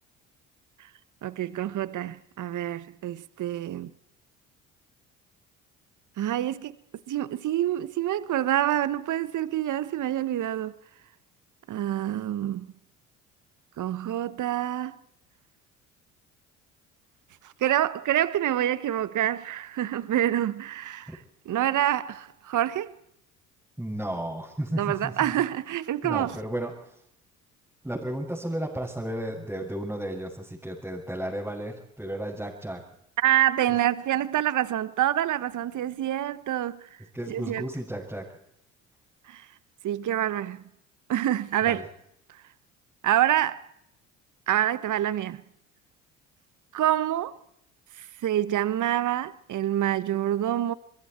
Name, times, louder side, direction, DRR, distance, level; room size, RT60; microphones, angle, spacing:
voice 1, 1.2-3.9 6.2-6.7 7.1-10.7 11.7-12.7 13.8-15.0 17.6-21.1 21.4-23.0 24.8-26.4 33.2-36.9 37.3-37.7 39.3-39.5 39.8-40.6 41.1-41.8 43.0-43.6 44.5-45.4 46.7-47.4 48.0-50.7, right 12 dB, 50° right, 1.4 m, -27 dB
voice 2, 23.8-25.3 26.0-27.0 27.8-32.8 33.7-33.8 37.1-38.3 41.6-41.9, right 1 dB, 5° right, 6.8 m, -33 dB
27.0 x 22.5 x 4.6 m
hypercardioid pair, 60°, 38 cm